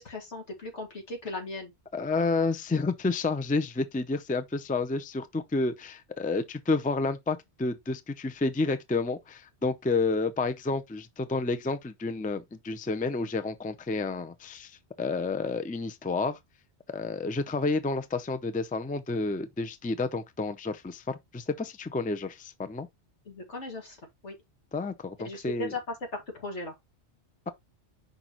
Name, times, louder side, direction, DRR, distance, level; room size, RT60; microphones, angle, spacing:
voice 1, 0.0-1.7 23.3-24.0 24.2-24.4 25.2-25.8 26.1-26.7, left 2 dB, 90° left, 2.3 m, -37 dB
voice 2, 1.9-16.4 16.9-22.9 24.7-25.7, left 3 dB, 10° left, 0.4 m, -30 dB
6.1 x 5.3 x 3.0 m
omnidirectional pair, 1.2 m